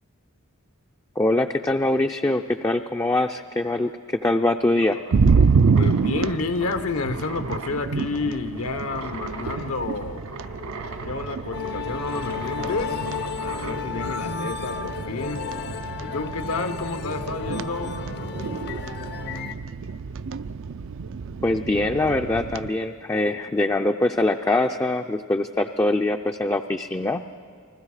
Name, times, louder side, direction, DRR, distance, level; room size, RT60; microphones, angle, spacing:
voice 1, 1.2-5.0 21.4-27.2, left 2 dB, 15° left, 4 dB, 0.4 m, -23 dB
sound 1, 4.8-13.9, right 2 dB, 80° right, 2.1 m, -39 dB
sound 2, 5.1-22.7, right 5 dB, 60° right, 0.4 m, -27 dB
voice 2, 5.7-10.2 11.0-13.1 13.4-15.5 16.0-18.0, left 3 dB, 75° left, 9 dB, 1.0 m, -30 dB
sound 3, 11.5-19.5, left 4 dB, 50° left, 0.7 m, -32 dB
29.5 x 20.5 x 4.9 m, 2.3 s
head